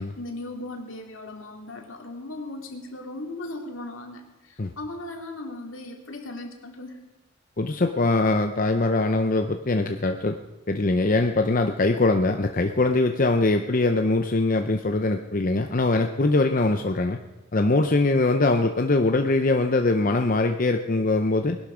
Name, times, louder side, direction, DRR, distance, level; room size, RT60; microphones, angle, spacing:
voice 1, 0.0-7.0, left 2 dB, 75° left, 2 dB, 2.5 m, -37 dB
voice 2, 7.6-10.4 10.7-17.2 17.5-21.6, left 2 dB, 40° left, 5 dB, 0.7 m, -22 dB
20.0 x 11.5 x 5.0 m, 1.1 s
head